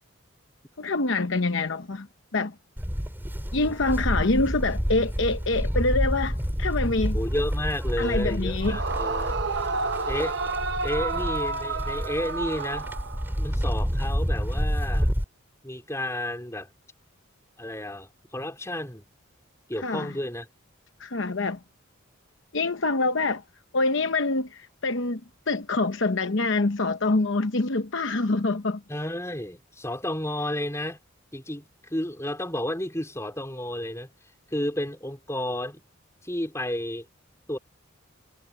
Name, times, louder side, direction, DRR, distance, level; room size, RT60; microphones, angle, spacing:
voice 1, 0.8-2.1 2.3-2.5 3.5-7.2 8.0-8.8 19.8-20.1 21.0-21.6 22.5-23.4 23.7-25.2 25.5-28.8, left 3 dB, 60° left, 0.9 m, -25 dB
Livestock farm animals working animals, 2.8-15.2, equal, 10° right, 5.8 m, -29 dB
voice 2, 7.1-9.3 10.1-10.4 10.8-12.9 13.4-15.1 15.6-16.7 17.6-19.1 19.7-20.5 28.9-31.0 31.3-34.1 34.5-35.8 36.2-37.1 37.5-37.6, left 1 dB, 15° left, 4.1 m, -31 dB
Yell / Screaming, 8.6-13.5, right 4 dB, 55° right, 1.0 m, -30 dB
head